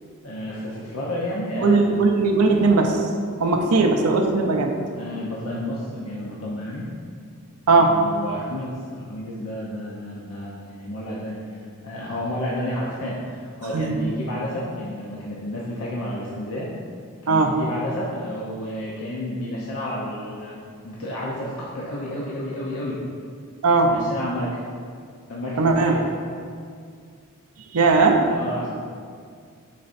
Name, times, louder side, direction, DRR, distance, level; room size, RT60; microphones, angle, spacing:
voice 1, 0.2-2.0 4.9-6.9 7.7-16.7 17.2-23.0 23.8-24.6 25.3-26.0 27.8-27.9 28.2-28.8, left 1 dB, 75° left, -6 dB, 0.8 m, -31 dB
voice 2, 1.6-3.1 3.4-4.7 7.7-8.0 13.7-13.9 17.3-17.6 23.6-23.9 25.6-26.0 27.7-28.3, right 3 dB, 80° right, 3 dB, 0.6 m, -18 dB
9.4 x 4.2 x 2.6 m, 2.1 s
head